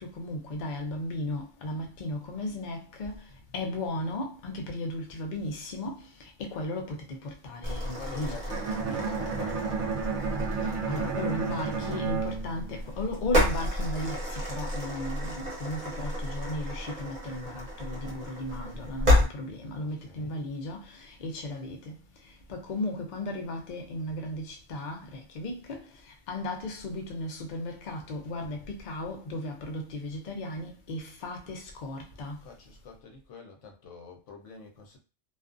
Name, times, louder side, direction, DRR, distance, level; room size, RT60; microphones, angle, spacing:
voice 1, 0.0-3.2 3.5-8.4 10.9-21.9 22.5-25.8 26.3-32.4, left 1 dB, 50° left, 0.6 m, -35 dB
sound 1, 7.6-19.2, left 1 dB, 40° right, 0.9 m, -31 dB
voice 2, 7.8-10.0 19.8-20.4 32.4-35.0, left 4 dB, 75° left, 1.0 m, -46 dB
Bowed string instrument, 8.5-13.4, right 5 dB, 70° right, 0.9 m, -32 dB
2.4 x 2.3 x 2.4 m
omnidirectional pair, 1.3 m